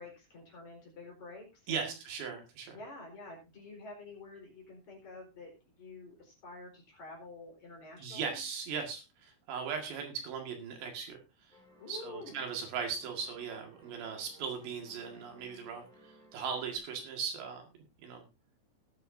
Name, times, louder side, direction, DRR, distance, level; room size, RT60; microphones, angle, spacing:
voice 1, 0.0-2.0 2.7-8.4 11.8-12.5, left 2 dB, 40° left, 0 dB, 5.0 m, -49 dB
voice 2, 1.7-2.8 8.0-11.2 11.9-17.6 18.0-18.2, right 6 dB, 65° right, 3 dB, 4.0 m, -38 dB
sound 1, 11.5-16.8, right 2 dB, ahead, 4.9 m, -60 dB
18.5 x 9.3 x 2.7 m, 0.27 s
omnidirectional pair, 5.6 m